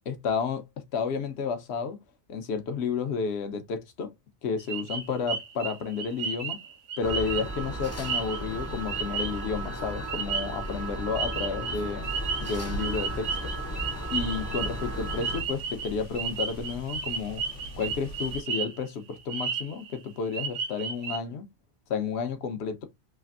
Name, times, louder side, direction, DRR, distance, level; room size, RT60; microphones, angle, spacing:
voice 1, 0.1-0.6 0.9-2.0 2.3-4.1 4.4-6.6 7.0-12.0 12.4-13.5 14.1-17.4 17.8-21.5 21.9-22.8, left 5 dB, 65° left, 1.0 m, -31 dB
sound 1, 4.7-9.6 10.1-10.9 11.2-18.8 19.1-20.0 20.3-21.2, right 6 dB, 85° right, 1.1 m, -34 dB
sound 2, 7.0-15.4, right 2 dB, 20° left, 0.4 m, -35 dB
sound 3, 12.0-18.4, equal, 80° left, 1.3 m, -41 dB
3.3 x 2.5 x 2.4 m
omnidirectional pair, 1.2 m